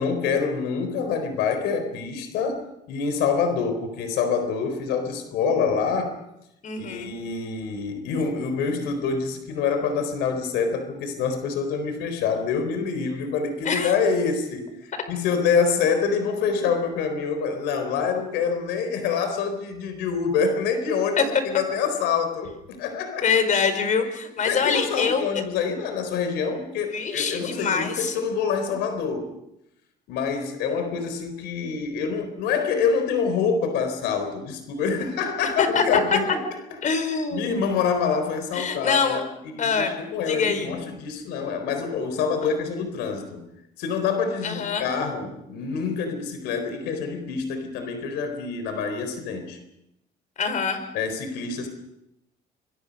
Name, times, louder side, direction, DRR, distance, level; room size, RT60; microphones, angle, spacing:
voice 1, 0.0-6.2 6.8-23.3 24.4-29.3 30.1-36.2 37.3-39.2 39.6-43.4 43.8-49.6 50.9-51.7, left 5 dB, 90° left, 8 dB, 4.2 m, -26 dB
voice 2, 6.6-7.1 13.6-13.9 21.2-21.3 23.2-25.3 26.9-28.2 35.6-36.0 36.8-37.5 38.5-39.2 39.6-40.0 40.3-40.7 44.4-44.9 50.4-50.8, left 5 dB, 50° left, 9 dB, 5.0 m, -24 dB
27.5 x 22.5 x 5.4 m, 0.83 s
cardioid pair, 110°, 17 cm